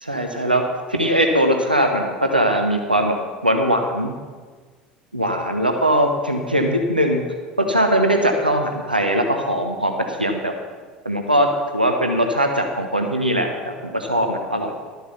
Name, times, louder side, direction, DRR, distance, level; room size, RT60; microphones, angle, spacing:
voice 1, 0.0-0.6 0.9-3.2 3.4-4.1 5.1-7.2 7.6-10.5 11.0-11.5 11.7-14.7, equal, 90° right, 4 dB, 1.0 m, -20 dB
12.5 x 7.3 x 5.8 m, 1.5 s
figure-of-eight pair, 70°, 5 cm